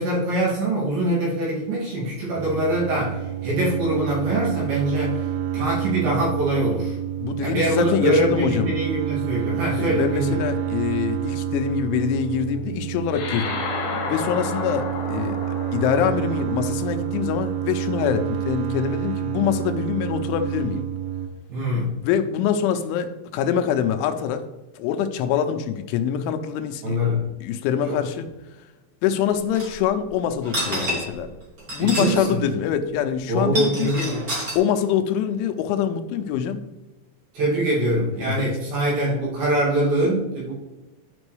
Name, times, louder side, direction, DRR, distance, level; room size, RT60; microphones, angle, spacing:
voice 1, 0.0-5.3 5.5-7.0 7.4-10.4 21.5-21.9 26.8-27.3 27.9-28.0 31.8-32.4 33.3-34.3 37.3-40.5, right 1 dB, 55° right, -6 dB, 3.8 m, -23 dB
sound 1, 2.4-21.3, right 11 dB, 80° right, 2.8 m, -28 dB
voice 2, 7.2-8.7 9.8-13.6 14.1-15.4 15.7-20.9 22.0-24.4 24.8-27.0 27.4-28.3 29.0-31.3 31.7-33.9 34.6-36.6 38.2-38.5, left 8 dB, 85° left, 8 dB, 3.1 m, -24 dB
sound 2, 13.1-17.8, left 4 dB, 65° left, 2.0 m, -32 dB
sound 3, 29.5-29.7 30.4-31.2 31.6-32.2 32.5-32.6 33.4-34.5, equal, 30° right, 1.7 m, -28 dB
12.5 x 5.3 x 3.2 m, 1.1 s
omnidirectional pair, 5.5 m